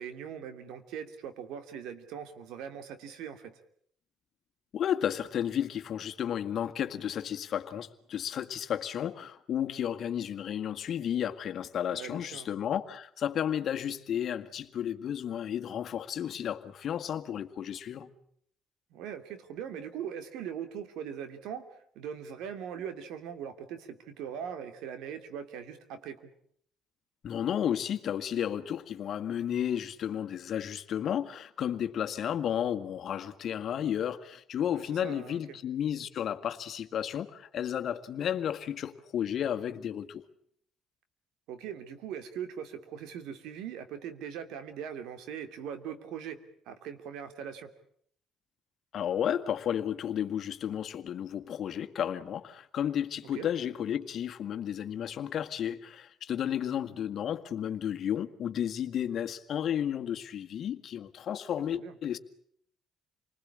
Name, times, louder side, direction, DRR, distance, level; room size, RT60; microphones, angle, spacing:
voice 1, 0.0-3.6 11.9-12.5 18.9-26.2 34.7-35.6 41.5-46.4 46.7-47.7 53.3-53.5 61.7-61.9, right 8 dB, 85° right, 2.8 m, -41 dB
voice 2, 4.7-18.1 27.2-40.2 48.9-62.2, left 9 dB, 60° left, 1.8 m, -32 dB
28.5 x 20.5 x 8.7 m
cardioid pair, 100°, 0 cm